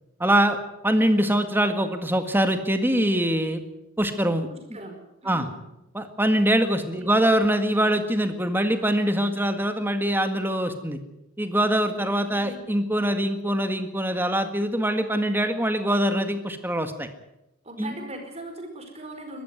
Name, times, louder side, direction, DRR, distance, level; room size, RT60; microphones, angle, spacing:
voice 1, 0.2-0.6 0.8-3.6 4.0-4.5 5.3-5.5 5.9-11.0 11.4-17.1 17.8-17.9, right 1 dB, 10° right, 8 dB, 1.8 m, -23 dB
voice 2, 4.5-5.6 6.6-7.2 12.0-12.6 17.6-19.4, right 1 dB, 30° right, 4 dB, 4.8 m, -40 dB
23.0 x 13.5 x 9.6 m, 0.90 s
head